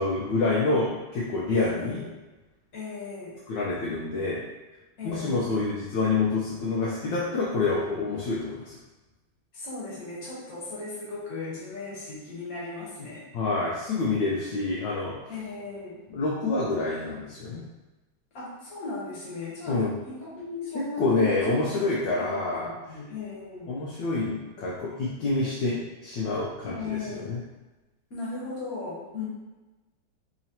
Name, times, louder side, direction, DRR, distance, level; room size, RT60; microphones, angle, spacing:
voice 1, 0.0-2.0 3.5-4.4 5.0-8.6 13.3-15.1 16.1-17.6 19.7-19.9 20.7-22.7 23.7-27.4, left 3 dB, 75° left, -6 dB, 1.1 m, -27 dB
voice 2, 1.5-2.1 2.7-3.4 5.0-5.6 9.5-13.3 15.3-16.0 18.3-21.5 21.8-23.7 26.6-27.3 28.1-29.2, left 3 dB, 50° left, -6 dB, 1.3 m, -37 dB
4.2 x 2.9 x 2.8 m, 1.1 s
omnidirectional pair, 2.4 m